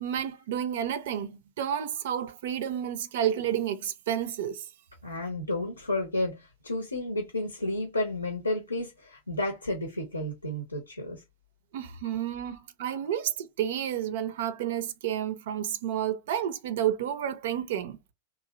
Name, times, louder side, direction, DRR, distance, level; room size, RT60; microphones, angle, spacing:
voice 1, 0.0-4.6 11.7-18.0, right 10 dB, 55° right, 0.4 m, -30 dB
voice 2, 5.0-11.2, left 1 dB, 85° left, 0.6 m, -31 dB
2.7 x 2.4 x 2.9 m
figure-of-eight pair, 90°, 0 cm